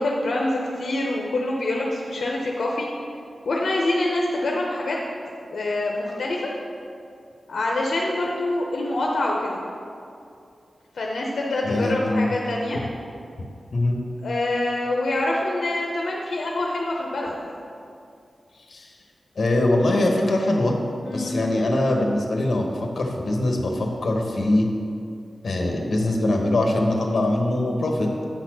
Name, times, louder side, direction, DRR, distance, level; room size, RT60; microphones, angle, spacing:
voice 1, 0.0-2.9 3.5-5.0 5.5-6.5 7.5-9.6 10.9-12.8 14.2-17.5 21.0-21.3, left 2 dB, 80° left, -2 dB, 0.8 m, -25 dB
voice 2, 11.6-12.3 13.7-14.0 18.7-18.9 19.4-20.8 21.1-24.7 25.4-28.1, left 1 dB, 60° left, 1 dB, 1.1 m, -22 dB
8.7 x 4.2 x 6.2 m, 2.4 s
wide cardioid pair, 140°, 0 cm